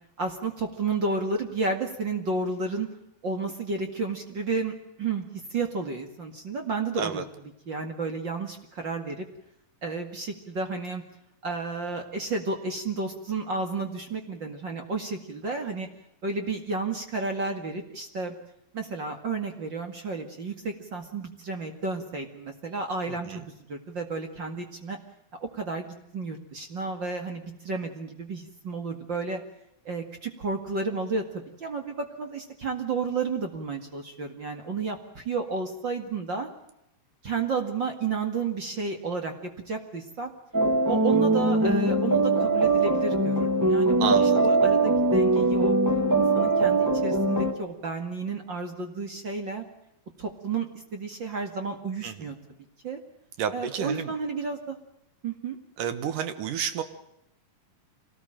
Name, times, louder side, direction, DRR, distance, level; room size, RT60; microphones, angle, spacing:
voice 1, 0.2-2.9 3.2-7.2 7.7-9.3 9.8-11.0 11.4-15.9 16.2-18.3 18.7-23.4 23.7-25.0 25.4-29.4 29.9-36.5 37.2-40.3 40.9-45.7 46.2-49.6 50.2-52.4 52.8-53.0 53.5-54.8 55.2-55.6, right 4 dB, 40° right, 5 dB, 2.1 m, -32 dB
sound 1, 40.5-47.5, right 2 dB, 5° right, 1.5 m, -22 dB
voice 2, 44.0-44.4 52.0-52.3 53.4-54.1 55.8-56.8, right 8 dB, 65° right, 11 dB, 2.8 m, -30 dB
26.0 x 18.0 x 9.1 m, 0.82 s
omnidirectional pair, 4.2 m